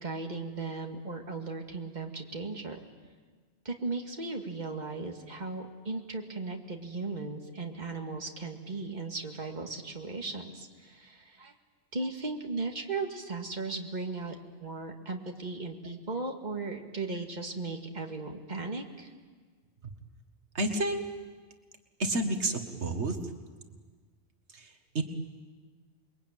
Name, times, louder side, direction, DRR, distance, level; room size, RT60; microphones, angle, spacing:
voice 1, 0.0-2.8 3.6-11.5 11.9-19.1, right 3 dB, 40° right, 3 dB, 2.3 m, -37 dB
voice 2, 20.5-21.0 22.0-23.3 24.5-25.0, right 2 dB, 85° right, 5 dB, 2.0 m, -30 dB
28.5 x 22.5 x 9.1 m, 1.5 s
omnidirectional pair, 1.1 m